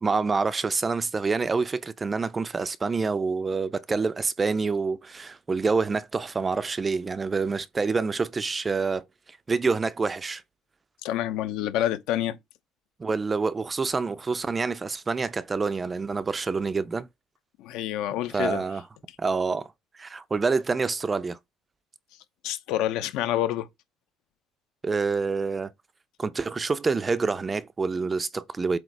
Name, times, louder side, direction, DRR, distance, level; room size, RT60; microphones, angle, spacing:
voice 1, 0.0-10.4 13.0-17.1 18.3-18.8 19.2-21.4 24.8-25.7 26.2-28.8, right 4 dB, 15° right, 0.4 m, -27 dB
voice 2, 11.0-12.4 17.6-18.6 22.4-23.7, left 12 dB, 75° left, 0.8 m, -28 dB
7.8 x 2.8 x 4.6 m
cardioid pair, 170°, 0 cm